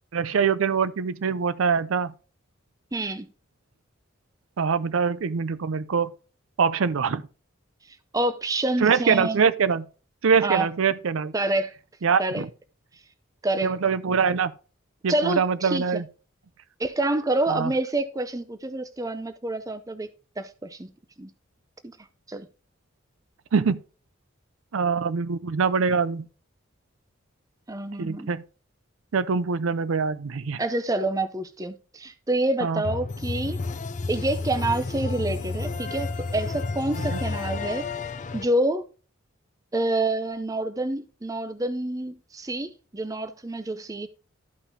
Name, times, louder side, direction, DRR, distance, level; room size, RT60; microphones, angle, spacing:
voice 1, 0.1-2.1 4.6-6.1 6.6-7.2 8.8-9.9 10.2-11.3 12.0-12.5 13.6-14.5 15.0-16.0 17.5-17.7 23.5-23.8 24.7-26.3 28.0-28.4 29.1-30.6 32.6-32.8 37.1-37.2, right 6 dB, 80° right, 0.5 m, -23 dB
voice 2, 2.9-3.3 8.1-9.4 10.4-10.7 11.3-11.7 12.2-12.4 13.4-13.7 15.1-16.0 16.8-20.1 20.4-20.9 21.2-21.3 21.8-22.0 22.3-22.5 27.7-28.3 30.6-33.6 34.1-37.8 38.3-38.8 39.7-44.1, right 2 dB, 15° right, 0.5 m, -27 dB
sound 1, 32.8-38.4, left 3 dB, 35° left, 0.5 m, -31 dB
13.0 x 5.7 x 2.7 m
head